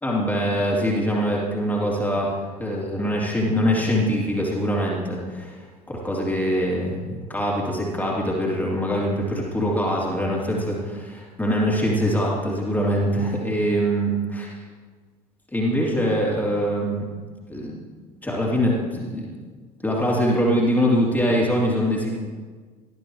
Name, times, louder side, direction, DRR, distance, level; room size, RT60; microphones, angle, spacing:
voice 1, 0.0-14.5 15.5-17.0 17.5-17.8 18.2-19.3 19.8-22.2, equal, 10° left, -3 dB, 3.1 m, -23 dB
19.0 x 13.0 x 3.2 m, 1.5 s
figure-of-eight pair, 70°, 20 cm